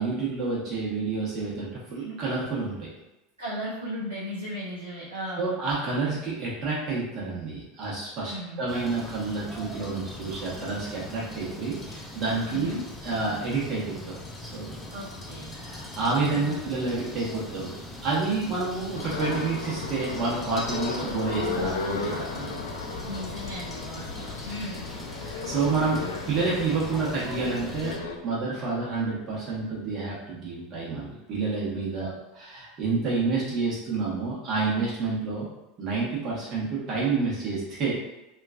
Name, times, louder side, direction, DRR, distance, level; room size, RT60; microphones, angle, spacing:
voice 1, 0.0-2.9 5.4-12.7 13.0-14.0 14.4-14.8 15.6-17.7 18.0-22.6 25.2-26.0 26.3-28.0 28.2-32.1 32.4-35.5 35.8-37.9, right 4 dB, 40° right, -6 dB, 1.1 m, -29 dB
voice 2, 3.4-5.6 8.3-8.6 12.5-12.9 14.9-15.5 16.3-16.7 23.0-24.9 31.9-32.2, equal, 85° right, -9 dB, 0.6 m, -36 dB
sound 1, 8.7-28.0, left 1 dB, 15° left, 0.5 m, -41 dB
sound 2, 18.9-28.2, left 4 dB, 75° left, 0.3 m, -35 dB
2.9 x 2.4 x 2.4 m, 0.96 s
figure-of-eight pair, 80°, 0 cm